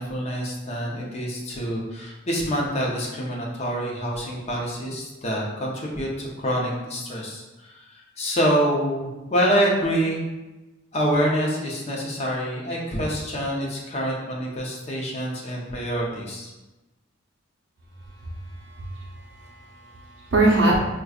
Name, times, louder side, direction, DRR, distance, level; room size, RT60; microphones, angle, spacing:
voice 1, 0.0-10.3 10.9-16.5, equal, 35° left, -3 dB, 0.6 m, -26 dB
voice 2, 18.6-20.8, right 2 dB, 65° right, -2 dB, 0.6 m, -23 dB
4.8 x 2.3 x 2.3 m, 1.1 s
head